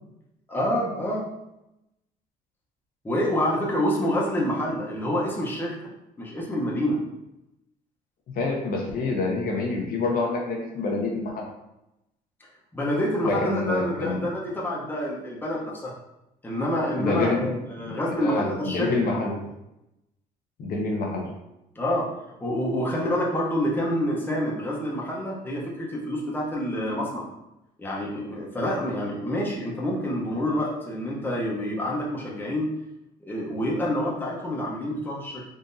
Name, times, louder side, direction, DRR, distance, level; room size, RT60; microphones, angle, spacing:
voice 1, 0.5-1.3 3.0-5.8 6.2-7.0 12.7-15.9 16.4-18.9 21.7-22.2 22.4-27.3 27.8-32.7 33.2-35.4, equal, 10° left, -4 dB, 0.8 m, -27 dB
voice 2, 8.3-11.5 13.2-14.3 17.0-17.5 17.8-17.9 18.2-18.5 18.7-19.4 20.6-21.3, left 3 dB, 55° left, -1 dB, 0.8 m, -27 dB
3.8 x 2.7 x 2.6 m, 0.88 s
cardioid pair, 110°, 17 cm